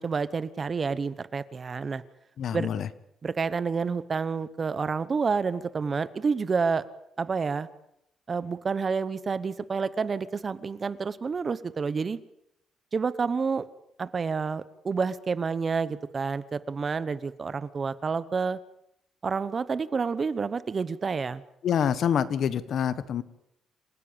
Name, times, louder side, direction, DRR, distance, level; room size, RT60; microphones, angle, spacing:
voice 1, 0.0-2.0 2.5-2.7 3.2-6.8 7.2-7.7 8.3-12.2 12.9-13.6 14.0-18.6 19.2-21.4, right 5 dB, 30° right, 16 dB, 1.0 m, -29 dB
voice 2, 2.4-2.9 21.6-23.2, left 8 dB, 55° left, 15 dB, 1.2 m, -26 dB
27.5 x 16.0 x 8.8 m, 0.79 s
cardioid pair, 160°, 0 cm